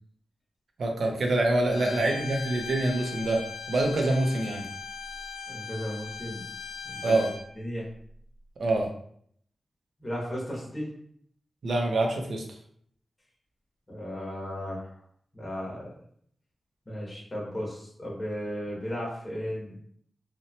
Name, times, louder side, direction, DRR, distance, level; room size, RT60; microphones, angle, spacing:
voice 1, 0.8-3.4 3.7-4.6 7.0-7.3 8.6-8.9 11.6-12.4, right 2 dB, 65° right, 2 dB, 0.5 m, -25 dB
Bowed string instrument, 1.7-7.4, left 5 dB, 80° left, 0.4 m, -39 dB
voice 2, 1.7-2.2 5.5-6.4 6.9-7.2 7.5-7.9 10.0-10.9 13.9-14.9 15.3-15.9 16.9-19.8, equal, 20° left, -5 dB, 0.8 m, -35 dB
2.8 x 2.1 x 2.7 m, 0.65 s
wide cardioid pair, 135°, 0 cm